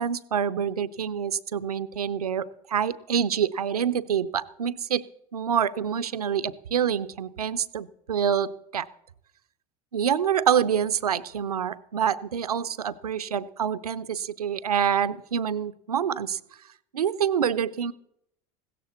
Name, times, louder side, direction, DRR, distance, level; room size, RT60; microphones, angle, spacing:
voice 1, 0.0-5.0 5.3-8.9 9.9-16.4 16.9-17.9, right 8 dB, 90° right, 15 dB, 0.6 m, -26 dB
16.5 x 13.5 x 4.2 m, 0.76 s
hypercardioid pair, 80°, 19 cm